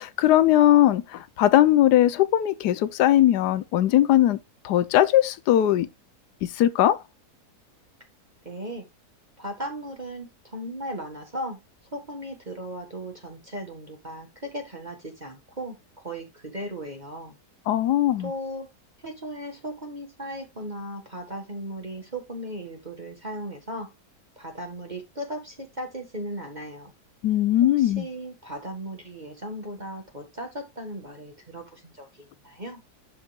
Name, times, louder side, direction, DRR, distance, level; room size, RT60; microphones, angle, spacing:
voice 1, 0.0-4.4 4.6-5.9 6.4-7.0 17.7-18.3 27.2-28.0, left 13 dB, 80° left, 1.3 m, -20 dB
voice 2, 8.5-8.9 9.4-11.6 11.9-15.8 16.0-17.4 18.2-18.7 19.0-23.9 24.4-26.9 27.8-32.8, right 1 dB, 25° right, 1.7 m, -37 dB
11.5 x 5.7 x 2.3 m
omnidirectional pair, 1.7 m